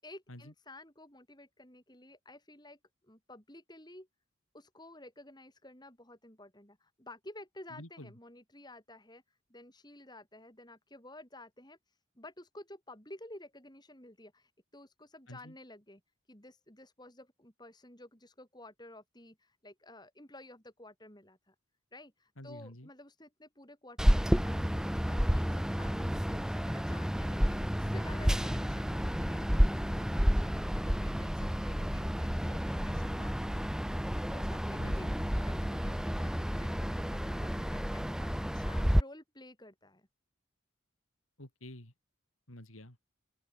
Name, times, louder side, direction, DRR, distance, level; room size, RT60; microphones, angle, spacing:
voice 1, 0.0-4.1 4.5-16.0 16.3-21.5 21.9-33.6 34.3-35.1 35.3-40.1, left 1 dB, 20° left, 5.7 m, -53 dB
voice 2, 7.7-8.1 15.3-15.5 22.4-22.9 34.8-35.2 41.4-41.9 42.5-43.0, left 1 dB, 90° left, 5.2 m, -49 dB
sound 1, 24.0-39.0, equal, 5° right, 1.2 m, -30 dB
open air
head